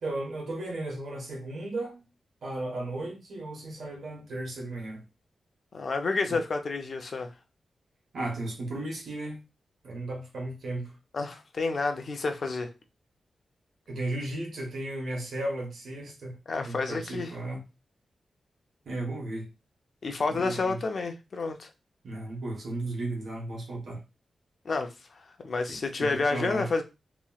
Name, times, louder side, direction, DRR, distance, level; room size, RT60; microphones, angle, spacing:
voice 1, 0.0-2.0 2.4-5.0 6.3-6.4 8.1-9.4 9.8-10.9 13.9-16.4 16.6-17.6 18.8-19.4 20.3-20.8 22.0-24.0 25.7-26.7, right 2 dB, 75° right, 1.2 m, -35 dB
voice 2, 5.7-7.3 11.1-12.7 16.5-17.4 20.0-21.7 24.6-24.9 25.4-26.8, left 3 dB, 50° left, 0.5 m, -29 dB
3.1 x 2.8 x 2.3 m
wide cardioid pair, 120°, 0 cm